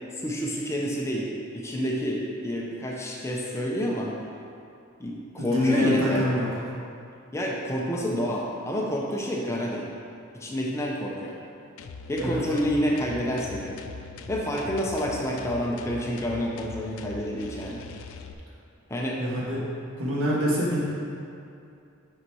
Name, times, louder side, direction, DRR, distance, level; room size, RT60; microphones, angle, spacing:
voice 1, 0.2-4.1 5.0-6.2 7.3-9.9 10.3-11.4 12.1-13.8 14.3-17.8 18.9-19.2, equal, 15° left, -2 dB, 0.6 m, -28 dB
voice 2, 5.4-6.5 12.2-12.4 19.2-19.7 20.0-20.8, left 1 dB, 85° right, -5 dB, 1.5 m, -25 dB
sound 1, 11.8-18.3, left 4 dB, 80° left, 0.4 m, -41 dB
7.0 x 4.2 x 4.7 m, 2.5 s
head